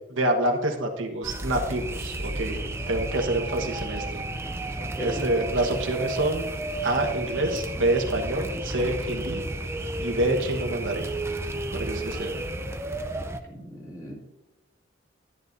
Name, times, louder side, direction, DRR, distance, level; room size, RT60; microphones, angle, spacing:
voice 1, 0.1-4.2 5.0-6.5 6.8-9.4 10.0-11.0 11.7-12.3, right 1 dB, 70° right, 1 dB, 1.3 m, -27 dB
sound 1, 1.2-13.4, right 2 dB, 15° right, 0.5 m, -32 dB
voice 2, 4.8-5.2 13.5-14.1, equal, 15° left, -4 dB, 2.5 m, -37 dB
11.0 x 11.0 x 2.7 m, 1.0 s
head